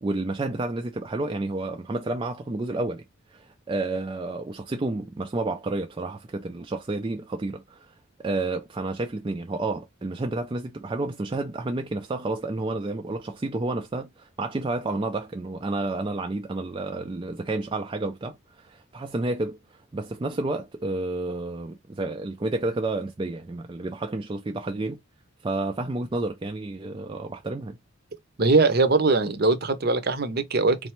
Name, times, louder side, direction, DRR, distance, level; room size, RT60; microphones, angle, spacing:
voice 1, 0.0-3.0 3.3-25.0 25.4-27.8, right 2 dB, 20° right, 0.3 m, -30 dB
voice 2, 28.4-30.9, right 3 dB, 45° right, 0.7 m, -21 dB
4.0 x 3.3 x 3.0 m
head